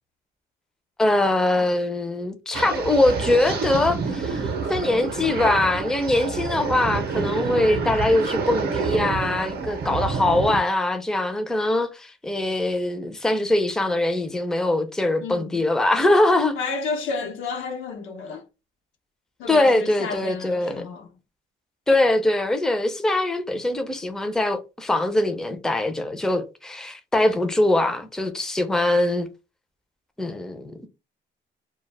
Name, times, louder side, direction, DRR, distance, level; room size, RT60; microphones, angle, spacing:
voice 1, 1.0-16.6 19.5-20.9 21.9-29.3 30.2-30.9, left 2 dB, 5° left, 0.4 m, -22 dB
sound 1, 2.5-10.6, right 4 dB, 55° right, 0.6 m, -28 dB
voice 2, 15.2-15.6 16.6-18.4 19.4-21.1, left 4 dB, 90° left, 0.7 m, -31 dB
2.2 x 2.0 x 3.2 m
cardioid pair, 90°, 20 cm